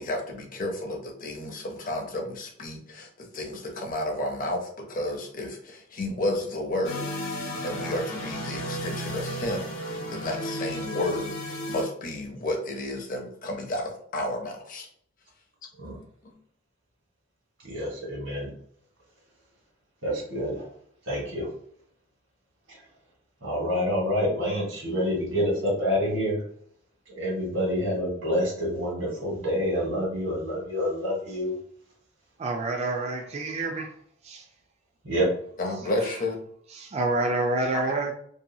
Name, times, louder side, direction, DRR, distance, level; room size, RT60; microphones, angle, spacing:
voice 1, 0.0-14.9 16.2-16.3 35.6-36.4 37.7-37.9, left 1 dB, 45° left, 1 dB, 0.6 m, -32 dB
sound 1, 6.8-11.8, equal, 85° left, 0.7 m, -34 dB
voice 2, 17.6-18.5 20.0-20.7 21.0-21.5 22.7-22.8 23.4-26.4 27.1-31.5 35.0-35.3, equal, 65° right, -4 dB, 1.3 m, -27 dB
voice 3, 32.4-33.9 34.2-34.4 36.8-38.1, right 2 dB, 30° right, 2 dB, 0.3 m, -27 dB
2.7 x 2.2 x 2.7 m, 0.64 s
head